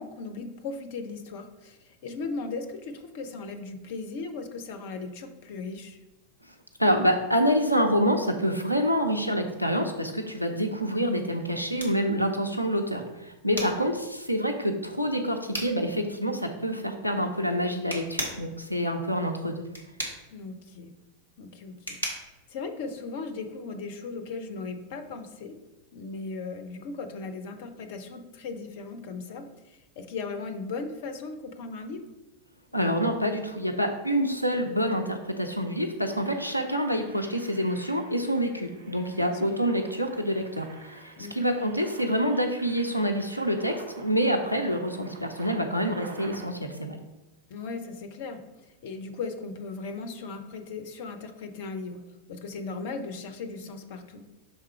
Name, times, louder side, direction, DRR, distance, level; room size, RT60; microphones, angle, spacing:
voice 1, 0.0-6.0 13.5-13.8 20.3-20.9 21.4-22.0 22.5-25.6 25.9-29.5 30.0-32.1 39.2-39.6 41.2-41.4 47.5-48.4 48.8-52.0 52.3-54.3, left 4 dB, 50° left, 8 dB, 0.7 m, -37 dB
voice 2, 6.5-19.6 32.7-47.0, equal, 90° left, 3 dB, 0.5 m, -27 dB
sound 1, 11.8-23.5, equal, 85° right, 1.3 m, -40 dB
Engine, 34.7-34.8 35.1-35.3 35.8-46.5, right 3 dB, 60° right, 1.0 m, -49 dB
6.3 x 3.6 x 4.4 m, 1.1 s
figure-of-eight pair, 90°, 0 cm